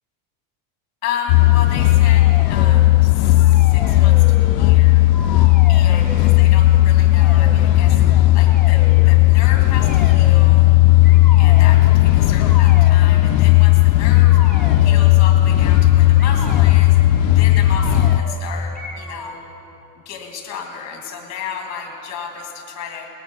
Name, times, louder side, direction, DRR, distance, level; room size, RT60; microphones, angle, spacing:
voice 1, 1.0-5.0 5.7-8.0 8.3-10.7 11.4-14.4 14.8-17.0 17.3-19.4 20.1-23.1, left 7 dB, 35° left, 2 dB, 2.0 m, -32 dB
sound 1, 1.3-18.2, left 16 dB, 85° left, 0.6 m, -13 dB
sound 2, 2.0-2.9 3.3-4.8 5.1-6.4 7.1-7.6 8.4-9.1 9.8-10.5 11.0-11.8 12.3-13.3 14.1-15.3 16.2-16.7 17.5-18.4 18.7-19.4, left 3 dB, ahead, 0.6 m, -35 dB
19.5 x 9.0 x 5.1 m, 2.9 s
cardioid pair, 180°, 47 cm